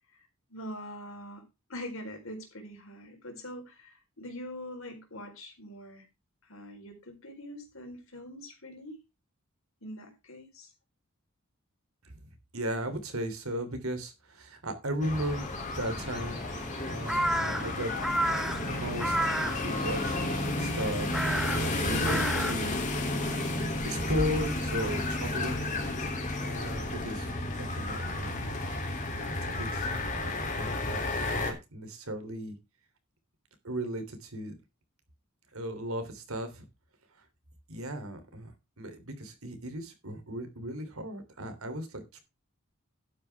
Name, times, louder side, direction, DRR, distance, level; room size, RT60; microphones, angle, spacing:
voice 1, 0.5-1.4 1.7-6.1 6.4-9.0 9.8-10.7, equal, 70° left, 4 dB, 4.2 m, -43 dB
voice 2, 12.5-16.4 16.9-17.9 18.5-26.1 26.4-27.3 27.6-28.5 29.1-31.0 31.4-32.6 33.6-34.5 35.5-36.7 37.7-42.2, equal, 85° right, 8 dB, 3.2 m, -36 dB
sound 1, 15.0-31.5, left 2 dB, 35° left, 3.1 m, -32 dB
Crow, 15.1-23.6, right 1 dB, ahead, 1.0 m, -34 dB
12.0 x 9.3 x 3.5 m, 0.26 s
head